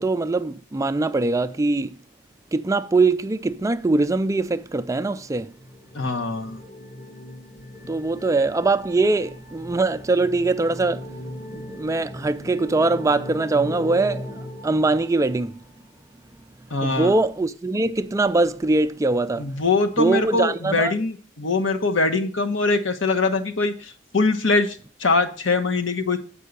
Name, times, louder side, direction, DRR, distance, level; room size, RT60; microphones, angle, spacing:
voice 1, 0.0-2.0 2.5-5.5 7.9-15.6 16.8-19.5 20.0-20.9, right 3 dB, 15° right, 0.4 m, -22 dB
sound 1, 5.2-15.7, left 1 dB, 45° left, 2.9 m, -39 dB
voice 2, 5.9-6.6 16.7-17.1 19.4-26.2, left 3 dB, 80° left, 1.2 m, -23 dB
7.5 x 5.5 x 6.7 m
head